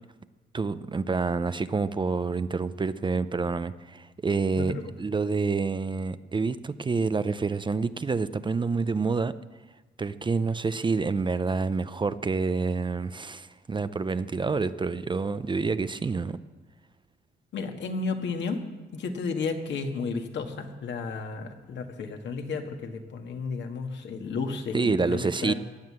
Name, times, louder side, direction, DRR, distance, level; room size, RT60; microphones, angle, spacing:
voice 1, 0.5-9.3 10.0-16.4 24.7-25.5, right 4 dB, 25° right, 13 dB, 0.6 m, -28 dB
voice 2, 4.6-4.9 17.5-18.6 18.9-25.5, left 4 dB, 65° left, 4 dB, 1.9 m, -33 dB
17.0 x 9.5 x 7.6 m, 1.2 s
cardioid pair, 90°, 20 cm